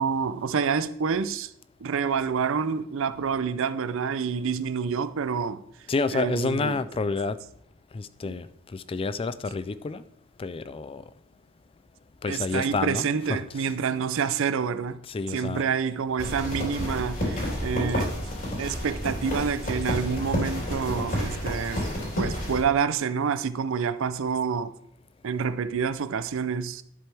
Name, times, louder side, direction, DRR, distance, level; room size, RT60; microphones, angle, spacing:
voice 1, 0.0-1.5 1.8-5.6 6.1-6.8 8.3-8.4 12.3-15.0 15.3-18.1 18.6-21.9 22.2-24.7 25.2-26.8, right 6 dB, 65° right, 0.5 m, -28 dB
voice 2, 5.9-7.4 7.9-10.0 10.4-11.0 12.2-13.7 15.0-15.7, left 4 dB, 25° left, 0.3 m, -29 dB
sound 1, 16.2-22.6, equal, 45° left, 3.5 m, -30 dB
11.0 x 7.7 x 3.4 m
head